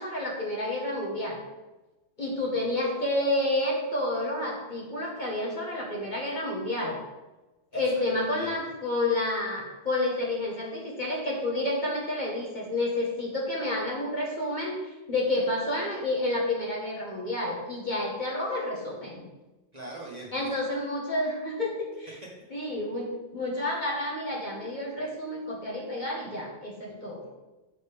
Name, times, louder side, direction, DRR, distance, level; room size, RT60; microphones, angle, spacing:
voice 1, 0.0-1.4 2.2-7.0 7.7-14.7 15.1-19.2 20.3-22.1 22.5-27.3, left 1 dB, 35° left, -3 dB, 1.5 m, -30 dB
voice 2, 7.7-8.6 19.7-20.5, right 2 dB, 35° right, -3 dB, 1.2 m, -43 dB
6.7 x 6.5 x 3.4 m, 1.1 s
omnidirectional pair, 1.3 m